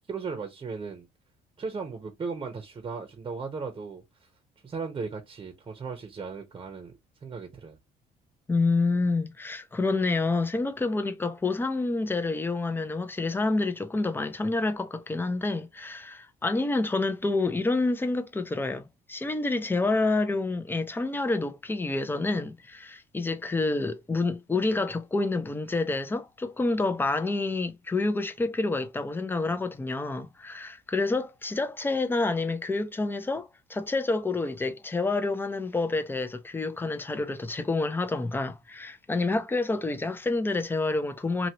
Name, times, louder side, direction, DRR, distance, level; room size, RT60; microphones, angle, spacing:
voice 1, 0.1-1.1 1.6-4.0 4.6-6.9 7.2-7.8, right 5 dB, 30° right, 0.9 m, -36 dB
voice 2, 8.5-41.5, left 3 dB, 10° left, 0.6 m, -28 dB
2.9 x 2.8 x 2.8 m
cardioid pair, 110°, 17 cm